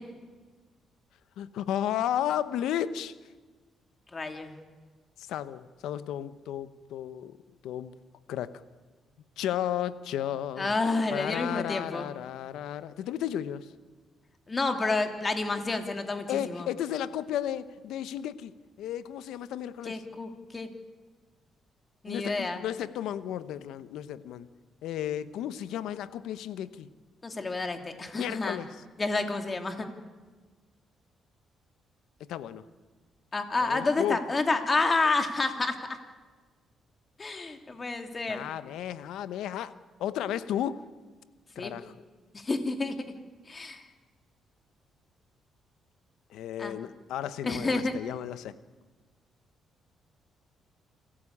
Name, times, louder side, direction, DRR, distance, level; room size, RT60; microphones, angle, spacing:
voice 1, 1.4-3.1 5.2-7.4 7.6-7.9 8.3-8.6 9.4-10.8 11.1-13.7 16.3-18.5 18.8-19.9 22.1-24.5 24.8-26.9 28.1-28.8 32.3-32.6 33.6-34.2 38.3-39.7 40.0-40.8 41.6-41.9 46.3-48.5, left 11 dB, 85° left, 14 dB, 1.0 m, -33 dB
voice 2, 4.1-4.6 10.6-12.1 14.5-16.7 19.8-20.7 22.0-22.6 27.2-28.6 29.0-29.9 33.3-36.0 37.2-38.5 41.6-41.7 42.3-43.0 43.5-43.8 46.6-46.8 47.4-47.9, left 3 dB, 30° left, 6 dB, 2.8 m, -29 dB
28.5 x 14.0 x 8.7 m, 1.4 s
cardioid pair, 90°, 0 cm